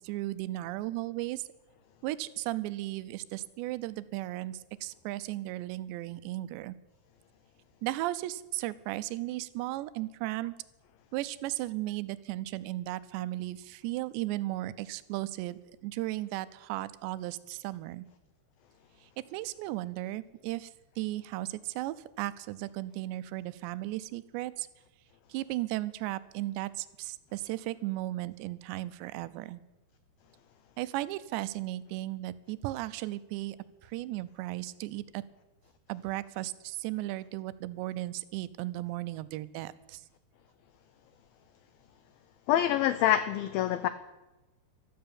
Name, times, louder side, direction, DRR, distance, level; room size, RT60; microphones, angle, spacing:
voice 1, 0.0-1.4 2.0-6.8 7.8-10.5 11.1-18.1 19.0-20.7 21.0-24.7 25.3-29.6 30.8-33.6 33.8-35.2 35.9-40.0, right 16 dB, 90° right, 16 dB, 2.9 m, -35 dB
voice 2, 42.5-43.9, left 12 dB, 90° left, 13 dB, 2.0 m, -26 dB
13.0 x 12.5 x 8.8 m, 1.1 s
omnidirectional pair, 5.0 m